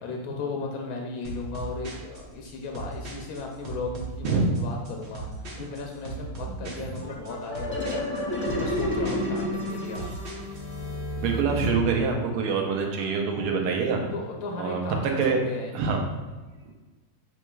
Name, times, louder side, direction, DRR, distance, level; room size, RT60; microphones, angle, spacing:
voice 1, 0.0-8.1 8.5-10.2 14.1-15.7, left 3 dB, 70° left, 1 dB, 1.0 m, -36 dB
sound 1, 1.2-10.8, right 3 dB, 50° right, 1.1 m, -38 dB
voice 2, 6.5-6.9 11.2-14.0 14.6-15.4 15.7-16.0, right 5 dB, 85° right, 2 dB, 1.3 m, -25 dB
sound 2, 7.0-12.4, left 1 dB, 10° left, 0.6 m, -31 dB
7.2 x 3.1 x 2.3 m, 1.3 s
omnidirectional pair, 1.7 m